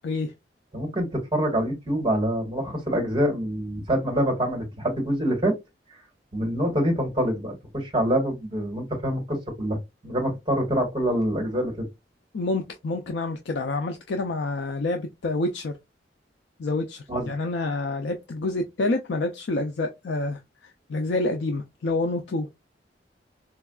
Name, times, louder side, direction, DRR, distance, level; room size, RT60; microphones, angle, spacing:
voice 1, 0.7-5.5 6.3-9.8 10.0-11.7 17.1-17.3, equal, 25° right, 1.2 m, -25 dB
voice 2, 12.3-15.8 16.6-22.5, left 2 dB, 75° left, 0.5 m, -28 dB
4.5 x 2.3 x 2.3 m
head